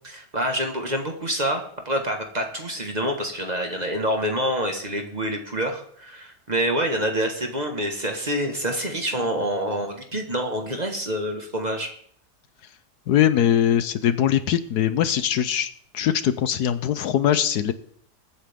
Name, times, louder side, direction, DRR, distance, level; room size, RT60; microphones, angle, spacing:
voice 1, 0.0-11.9, equal, 25° right, 3 dB, 1.7 m, -27 dB
voice 2, 13.1-17.7, left 10 dB, 70° left, 13 dB, 1.2 m, -21 dB
22.5 x 8.8 x 3.7 m, 0.62 s
omnidirectional pair, 1.8 m